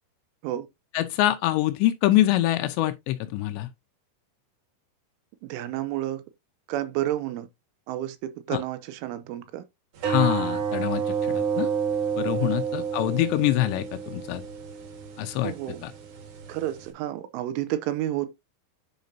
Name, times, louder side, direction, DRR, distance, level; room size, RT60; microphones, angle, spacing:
voice 1, 0.9-3.7 8.5-8.6 10.1-11.7 12.2-14.4 15.2-15.5 15.8-15.9, left 14 dB, 90° left, 2.6 m, -25 dB
voice 2, 5.4-6.2 6.7-7.5 7.9-9.6 12.4-12.5 15.4-15.8 16.5-18.3, right 13 dB, 80° right, 3.2 m, -30 dB
sound 1, 10.0-16.9, right 6 dB, 55° right, 2.3 m, -30 dB
10.5 x 5.1 x 2.7 m
omnidirectional pair, 5.8 m